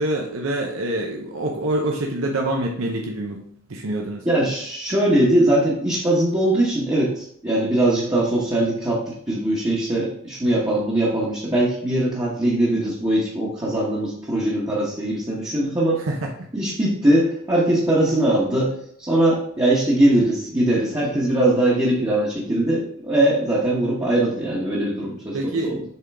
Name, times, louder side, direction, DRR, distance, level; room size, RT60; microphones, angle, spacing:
voice 1, 0.0-4.3 16.1-16.3 25.3-25.7, right 1 dB, 75° right, 1 dB, 0.8 m, -26 dB
voice 2, 4.2-16.0 16.5-18.7 19.0-25.8, right 1 dB, 20° right, -6 dB, 1.1 m, -21 dB
7.2 x 3.8 x 3.5 m, 0.67 s
head